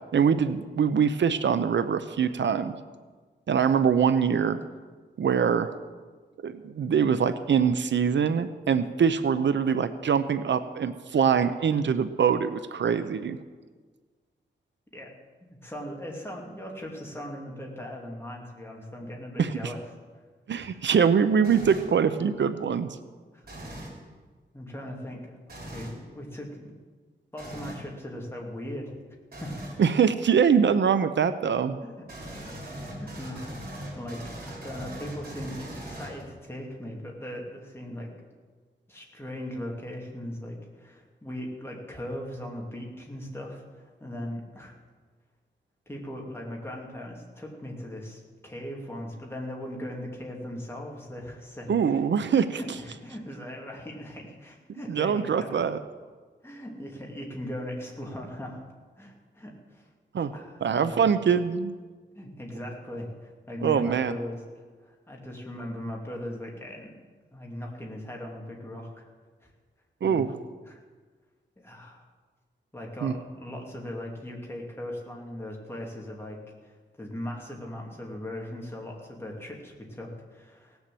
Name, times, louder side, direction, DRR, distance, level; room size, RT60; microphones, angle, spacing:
voice 1, 0.1-2.8 3.5-4.6 5.2-5.7 6.4-13.4 19.4-19.7 20.5-23.0 29.8-31.8 51.7-52.6 54.9-55.8 60.1-60.3 60.6-61.7 63.6-64.1 70.0-70.3 73.0-73.1, right 7 dB, 75° right, 11 dB, 0.7 m, -23 dB
voice 2, 15.6-19.8 20.6-20.7 23.3-23.4 24.5-25.4 25.7-26.7 27.3-29.0 29.4-29.5 31.8-32.0 32.4-32.6 33.0-38.1 38.9-44.7 45.9-52.0 52.5-55.7 56.4-58.6 59.0-59.8 60.3-61.0 62.1-64.4 64.8-67.0 67.3-69.0 70.0-70.3 70.7-70.8 71.6-72.0 72.7-80.8, left 1 dB, 10° left, -1 dB, 2.6 m, -39 dB
sound 1, 21.4-22.0 23.4-24.0 25.5-26.0 27.4-27.9 29.3-29.8 32.1-36.5, right 1 dB, 50° right, 4.2 m, -40 dB
18.0 x 7.1 x 7.8 m, 1.4 s
wide cardioid pair, 140°, 19 cm